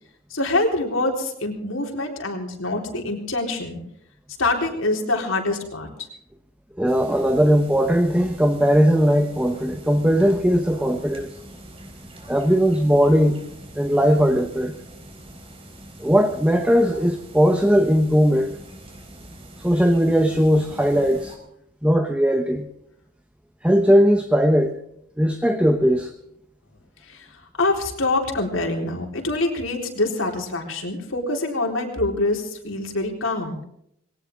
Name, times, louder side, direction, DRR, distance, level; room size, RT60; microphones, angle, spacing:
voice 1, 0.3-3.8 4.4-5.9 27.1-27.3 27.6-33.6, left 2 dB, 85° left, 2 dB, 3.9 m, -25 dB
voice 2, 6.8-11.4 12.3-13.4 13.7-14.7 16.0-18.6 19.6-21.3 21.8-22.7 23.6-24.8 25.2-26.1, equal, 5° right, 6 dB, 1.0 m, -19 dB
sound 1, 6.9-21.4, right 1 dB, 30° right, 4.0 m, -43 dB
21.0 x 18.0 x 3.6 m, 0.74 s
head